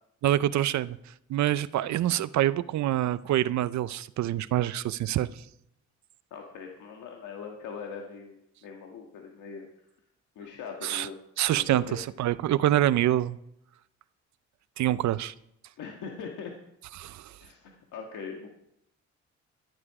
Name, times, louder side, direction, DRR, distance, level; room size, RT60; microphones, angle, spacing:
voice 1, 0.2-1.0 1.3-5.4 10.8-11.1 11.4-13.4 14.8-15.3 17.0-17.3, right 13 dB, 65° right, 17 dB, 0.6 m, -26 dB
voice 2, 6.3-9.7 10.4-11.2 11.6-12.0 15.8-16.5 17.4-18.5, left 6 dB, 80° left, 1 dB, 1.7 m, -41 dB
15.0 x 11.0 x 4.9 m, 0.79 s
cardioid pair, 90°, 30 cm